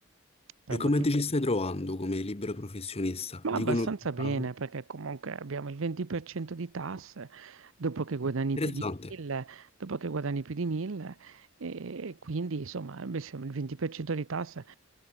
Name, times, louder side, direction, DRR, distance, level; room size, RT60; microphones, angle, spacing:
voice 1, 0.7-3.9 4.2-4.4 8.6-9.1, left 2 dB, 30° left, 1.1 m, -30 dB
voice 2, 3.4-8.8 9.1-14.8, right 4 dB, 65° right, 0.7 m, -34 dB
head